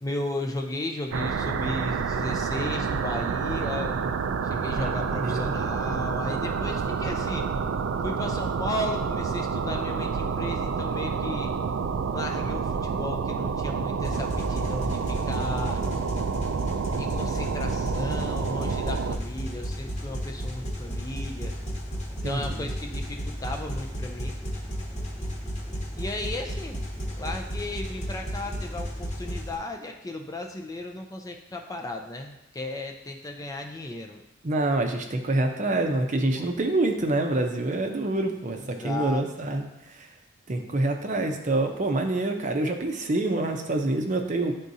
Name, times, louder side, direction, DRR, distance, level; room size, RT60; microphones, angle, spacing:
voice 1, 0.0-4.0 4.4-7.5 8.0-11.5 12.1-15.8 17.0-21.5 22.2-24.4 25.9-26.8 27.2-34.2 36.4-36.5 38.7-39.2, left 2 dB, 20° left, 3 dB, 0.4 m, -35 dB
sound 1, 1.1-19.2, right 5 dB, 85° right, 0.4 m, -29 dB
voice 2, 4.8-5.5 22.2-22.7 34.4-40.1 40.5-44.5, right 2 dB, 40° right, 4 dB, 0.6 m, -26 dB
sound 2, 14.0-29.6, equal, 35° left, 1.0 m, -33 dB
10.5 x 3.7 x 2.7 m, 0.91 s
head